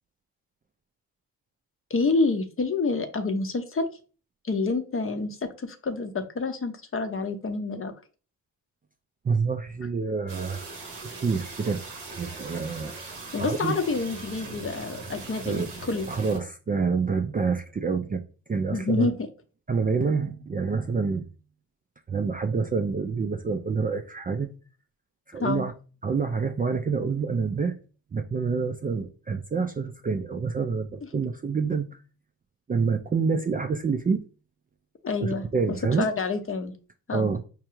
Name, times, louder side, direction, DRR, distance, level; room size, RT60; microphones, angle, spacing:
voice 1, 1.9-3.9 4.4-7.9 13.3-16.1 18.7-19.3 25.4-25.7 35.0-36.7 37.1-37.3, left 3 dB, 35° left, 7 dB, 0.7 m, -28 dB
voice 2, 9.2-10.6 11.2-11.8 12.1-12.9 13.4-13.7 15.4-15.7 16.1-18.2 18.5-19.1 19.7-21.3 22.1-24.5 25.3-25.7 26.0-27.7 28.1-31.9 32.7-34.2 35.2-36.1 37.1-37.4, right 5 dB, 20° right, 6 dB, 0.4 m, -27 dB
sound 1, 10.3-16.4, right 3 dB, 85° right, 1.0 m, -40 dB
4.8 x 2.3 x 3.0 m, 0.36 s
supercardioid pair, 50°, 40 cm